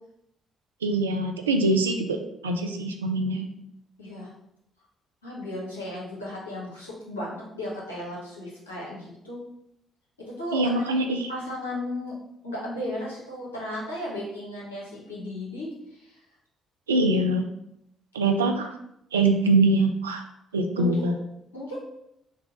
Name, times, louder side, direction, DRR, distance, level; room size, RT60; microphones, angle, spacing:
voice 1, 0.8-2.2 2.4-3.5 10.5-11.3 16.9-17.5 18.1-18.7 19.1-20.3 20.5-21.2, right 2 dB, 85° right, 5 dB, 0.3 m, -23 dB
voice 2, 4.0-4.3 5.2-9.4 10.2-10.8 11.3-12.1 12.4-16.2 20.7-21.2 21.5-21.8, left 1 dB, 90° left, -6 dB, 1.0 m, -35 dB
3.9 x 2.3 x 3.8 m, 0.79 s
figure-of-eight pair, 45°, 0 cm